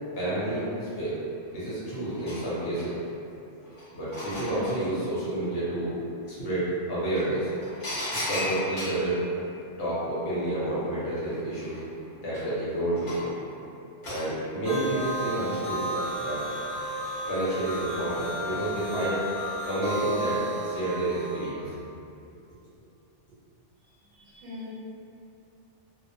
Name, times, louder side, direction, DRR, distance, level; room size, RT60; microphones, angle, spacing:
voice 1, 0.2-1.2 1.5-3.0 3.9-5.9 6.3-7.5 8.2-9.2 9.8-11.8 12.2-13.3 14.1-16.4 17.2-19.2 19.6-21.8, right 1 dB, 60° left, -10 dB, 0.9 m, -30 dB
sound 1, 1.5-1.6 1.9-3.1 3.6-4.9 6.6-6.7 7.2-9.1 10.7-10.8 11.1-13.4 14.0-14.3 15.9-16.6 17.1-17.6 18.6-18.9 19.2-19.3, left 1 dB, 40° left, 0.5 m, -36 dB
sound 2, 14.6-21.5, right 1 dB, 50° right, 0.7 m, -33 dB
voice 2, 24.1-24.7, left 2 dB, 80° right, -7 dB, 1.0 m, -42 dB
2.3 x 2.1 x 2.5 m, 2.7 s
omnidirectional pair, 1.3 m